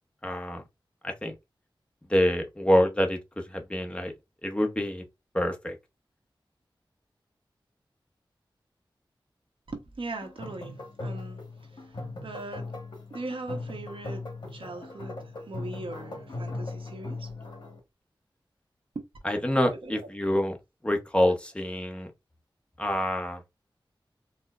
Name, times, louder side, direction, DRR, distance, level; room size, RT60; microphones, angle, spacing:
voice 1, 0.2-0.6 1.0-1.3 2.1-3.2 3.5-4.1 4.4-5.0 5.3-5.8 19.2-20.5 20.8-22.1 22.8-23.4, left 1 dB, 10° left, 0.8 m, -26 dB
voice 2, 9.7-12.7 13.1-17.4 18.9-19.0 19.7-19.9, right 2 dB, 80° right, 0.9 m, -40 dB
sound 1, 10.2-17.8, left 2 dB, 60° left, 1.2 m, -39 dB
4.3 x 2.0 x 2.3 m
wide cardioid pair, 75°, 9 cm